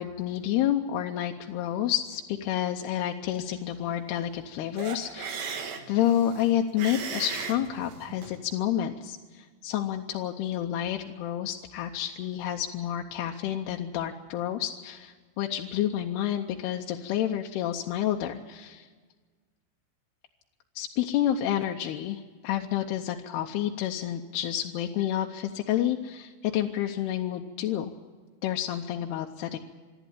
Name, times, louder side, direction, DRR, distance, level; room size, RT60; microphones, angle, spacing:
voice 1, 0.0-18.9 20.8-27.9 28.4-29.6, left 11 dB, 80° left, 3 dB, 2.8 m, -29 dB
sound 1, 4.8-8.4, right 6 dB, 55° right, 2.4 m, -37 dB
26.0 x 11.0 x 9.9 m, 1.4 s
omnidirectional pair, 4.6 m